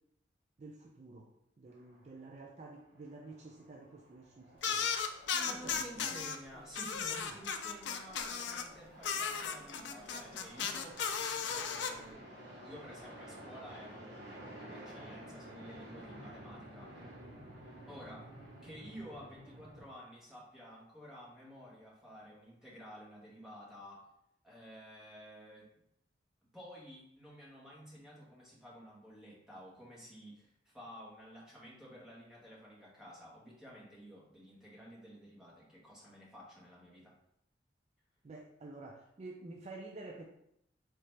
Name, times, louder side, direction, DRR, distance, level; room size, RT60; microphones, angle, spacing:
voice 1, 0.6-1.3 1.6-4.9 5.5-6.2 7.2-7.4 38.2-40.2, right 2 dB, 35° right, 0 dB, 0.4 m, -50 dB
sound 1, 1.7-2.6 2.9-19.9, right 1 dB, 65° right, 0.9 m, -53 dB
sound 2, 4.6-6.4 6.7-8.7 9.0-11.9, left 6 dB, 70° left, 0.4 m, -35 dB
voice 2, 5.3-11.0 11.4-12.3 12.6-17.0 17.9-18.3 18.6-24.0 24.4-25.7 26.5-37.1, equal, 5° right, -6 dB, 1.2 m, -52 dB
3.8 x 3.3 x 3.2 m, 0.77 s
head